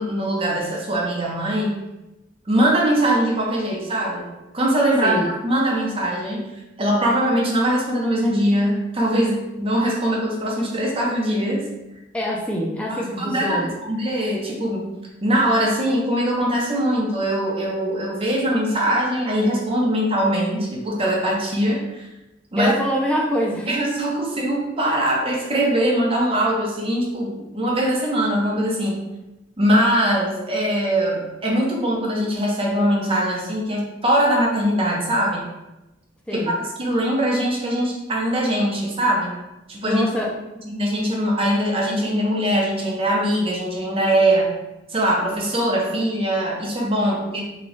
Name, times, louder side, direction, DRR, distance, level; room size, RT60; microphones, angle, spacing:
voice 1, 0.0-1.8 2.5-4.2 4.5-6.4 6.8-11.6 12.9-14.9 15.2-22.1 22.5-22.7 23.7-29.0 29.6-35.5 36.3-36.4 36.8-39.3 39.7-40.0 40.6-44.5 44.9-47.4, right 1 dB, 30° right, -2 dB, 0.7 m, -21 dB
voice 2, 12.1-13.7 22.6-23.7 36.3-36.6 39.8-40.3, equal, 5° left, -3 dB, 0.4 m, -24 dB
3.0 x 2.3 x 4.0 m, 0.98 s
head